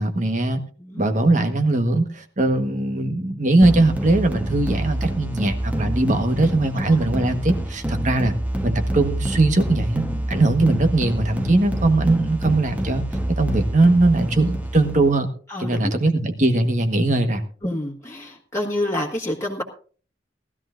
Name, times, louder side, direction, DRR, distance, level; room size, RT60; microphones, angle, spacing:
voice 1, 0.0-0.6 0.9-8.3 8.6-13.0 13.4-15.3 15.6-17.4, right 2 dB, 45° right, 7 dB, 1.4 m, -20 dB
sound 1, 3.6-15.1, right 1 dB, 10° right, 1.1 m, -27 dB
voice 2, 15.5-15.9 17.6-19.6, left 1 dB, 15° left, -2 dB, 1.7 m, -28 dB
19.0 x 13.5 x 2.6 m, 0.41 s
head